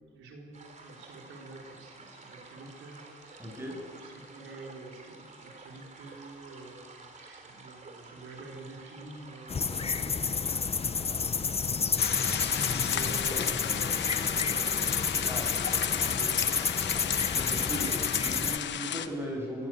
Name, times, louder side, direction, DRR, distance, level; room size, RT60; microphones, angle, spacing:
voice 1, 0.0-3.6 4.0-10.2 12.3-15.5 15.9-16.8 19.0-19.1, right 3 dB, 80° right, 0 dB, 4.2 m, -47 dB
sound 1, 0.5-18.4, right 3 dB, 35° right, 3.6 m, -51 dB
voice 2, 3.4-3.8 15.3-15.5 17.3-19.7, equal, 10° right, 0 dB, 7.7 m, -37 dB
sound 2, 9.5-18.6, left 5 dB, 30° left, 0.9 m, -29 dB
sound 3, 12.0-19.1, left 9 dB, 65° left, 1.1 m, -34 dB
23.5 x 14.5 x 9.2 m, 2.1 s
cardioid pair, 90°, 20 cm